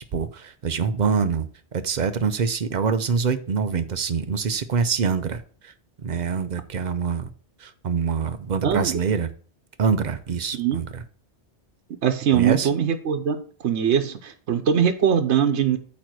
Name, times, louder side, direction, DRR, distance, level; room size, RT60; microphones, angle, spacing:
voice 1, 0.1-1.5 1.7-5.7 6.0-7.3 7.6-9.3 9.8-11.0 12.3-12.7, right 6 dB, 45° right, 10 dB, 0.7 m, -25 dB
voice 2, 8.6-8.9 10.5-10.8 12.0-13.4 13.6-15.8, right 8 dB, 85° right, 8 dB, 1.1 m, -21 dB
8.6 x 3.0 x 6.1 m, 0.42 s
omnidirectional pair, 1.1 m